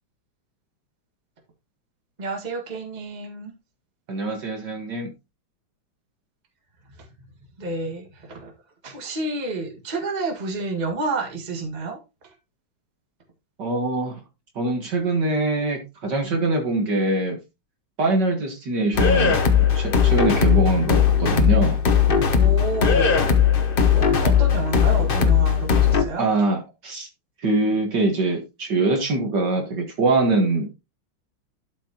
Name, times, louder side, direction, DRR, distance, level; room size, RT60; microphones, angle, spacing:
voice 1, 2.2-3.5 7.6-8.5 8.8-12.0 22.4-23.2 23.9-26.3, right 3 dB, 20° right, 1.7 m, -29 dB
voice 2, 4.1-5.1 13.6-14.2 14.6-17.4 18.0-19.4 19.7-21.8 26.2-27.1 27.4-30.7, right 2 dB, 55° right, 2.1 m, -23 dB
sound 1, 18.9-26.0, left 7 dB, 55° left, 0.6 m, -18 dB
12.0 x 5.7 x 2.9 m
omnidirectional pair, 2.4 m